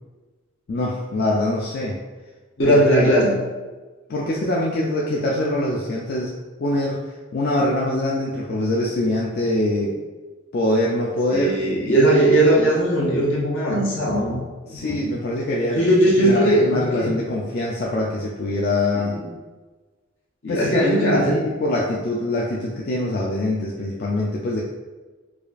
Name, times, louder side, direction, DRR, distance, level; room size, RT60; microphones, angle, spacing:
voice 1, 0.7-2.0 2.6-3.1 4.1-6.3 6.6-10.0 10.5-11.5 14.6-15.9 16.2-19.2 20.5-24.6, left 1 dB, 50° left, -3 dB, 0.4 m, -24 dB
voice 2, 2.6-3.4 11.3-14.4 14.8-15.0 15.7-17.1 19.0-19.2 20.4-21.4, right 1 dB, 75° left, -4 dB, 1.1 m, -18 dB
4.8 x 2.3 x 2.5 m, 1.3 s
head